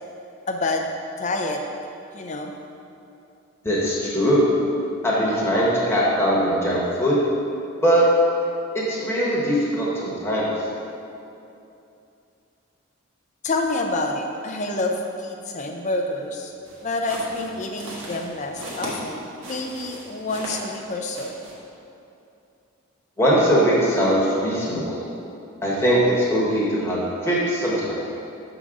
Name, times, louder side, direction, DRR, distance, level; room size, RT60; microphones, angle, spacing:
voice 1, 0.5-0.9 1.2-1.6 2.1-2.5 13.4-16.5 16.8-21.4, left 2 dB, 35° left, 3 dB, 0.5 m, -28 dB
voice 2, 3.6-4.4 5.0-7.2 7.8-8.0 8.7-10.5 23.2-25.0 25.6-28.0, equal, 10° left, -6 dB, 1.1 m, -21 dB
sound 1, 16.6-20.8 21.1-21.5, right 1 dB, 70° right, 1.4 m, -37 dB
6.6 x 3.8 x 4.8 m, 2.7 s
head